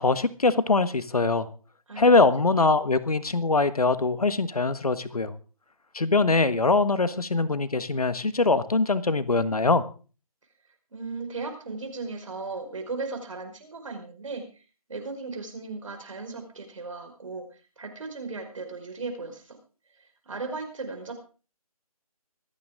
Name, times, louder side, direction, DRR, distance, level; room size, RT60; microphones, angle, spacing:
voice 1, 0.0-1.5 2.0-5.3 5.9-9.9, left 3 dB, 80° left, 14 dB, 1.5 m, -22 dB
voice 2, 10.9-14.6 14.9-19.6 20.0-21.1, right 3 dB, 60° right, 5 dB, 5.0 m, -36 dB
25.0 x 9.3 x 3.7 m, 0.37 s
figure-of-eight pair, 155°, 19 cm